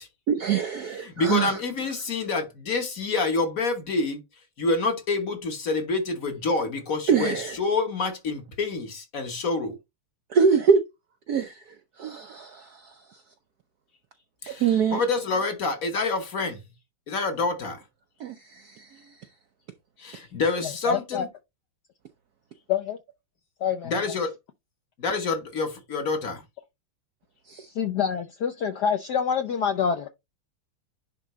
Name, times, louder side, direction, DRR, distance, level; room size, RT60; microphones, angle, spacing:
voice 1, 0.3-1.6 7.1-7.5 10.3-10.8 11.3-11.6 12.0-13.2 14.5-15.0 18.2-19.2 27.5-27.7, right 6 dB, 70° right, 0.9 m, -24 dB
voice 2, 1.0-4.2 4.6-9.8 14.4-16.6 17.1-17.8 20.0-21.3 23.8-24.3 25.0-26.4, left 3 dB, 45° left, 1.4 m, -27 dB
voice 3, 20.8-21.3 22.7-23.0 23.6-23.9 27.7-30.1, left 7 dB, 70° left, 1.0 m, -26 dB
10.5 x 3.7 x 3.1 m
omnidirectional pair, 2.4 m